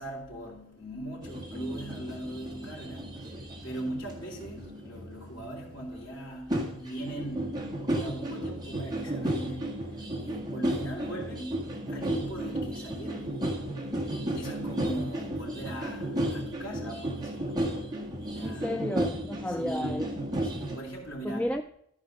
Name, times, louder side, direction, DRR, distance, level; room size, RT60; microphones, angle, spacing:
voice 1, 0.0-18.9 19.5-21.5, right 1 dB, 60° left, 3.5 m, -40 dB
sound 1, 1.2-6.0 6.5-20.8, right 1 dB, 20° right, 1.8 m, -34 dB
voice 2, 18.4-20.3 21.2-21.7, left 1 dB, 5° left, 0.3 m, -33 dB
14.0 x 4.8 x 5.0 m
head